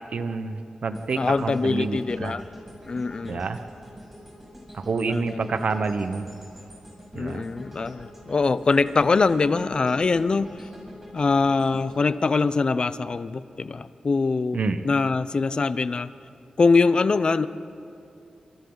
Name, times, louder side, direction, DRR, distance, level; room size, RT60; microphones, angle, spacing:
voice 1, 0.1-2.4 3.3-3.6 4.7-6.3 7.1-7.4 14.5-14.8, right 4 dB, 60° right, 9 dB, 1.1 m, -28 dB
sound 1, 0.9-13.1 13.5-13.7, equal, 10° right, 6.5 m, -45 dB
voice 2, 1.2-2.4 2.9-3.4 5.1-5.4 7.1-10.7 11.1-16.1 16.6-17.5, left 4 dB, 40° left, 14 dB, 0.6 m, -23 dB
29.0 x 27.0 x 4.0 m, 2.6 s
wide cardioid pair, 120°, 2 cm